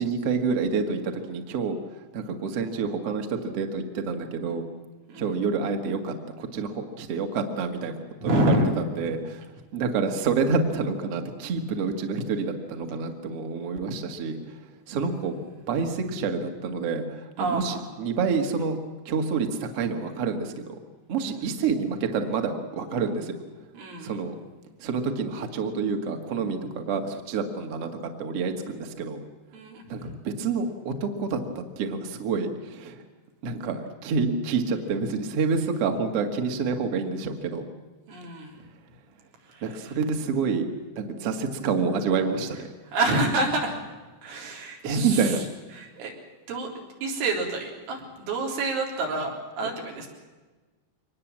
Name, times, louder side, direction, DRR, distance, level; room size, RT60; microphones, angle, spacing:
voice 1, 0.0-1.8 2.1-4.6 5.2-7.9 8.2-14.6 14.9-15.3 15.7-17.0 17.4-18.8 19.1-20.8 21.1-23.3 24.0-24.3 24.8-27.9 28.2-29.2 29.9-33.0 33.4-37.6 39.6-40.7 41.0-42.7 44.8-45.4, right 5 dB, 50° right, 4 dB, 1.9 m, -28 dB
voice 2, 8.2-8.8 15.0-15.4 17.4-17.8 21.2-21.5 23.7-24.2 29.5-30.2 38.1-38.6 39.4-40.0 42.8-43.8 44.2-45.5 45.7-46.1 46.5-50.1, right 2 dB, 80° right, 0 dB, 6.1 m, -28 dB
24.0 x 20.0 x 7.5 m, 1.3 s
omnidirectional pair, 5.3 m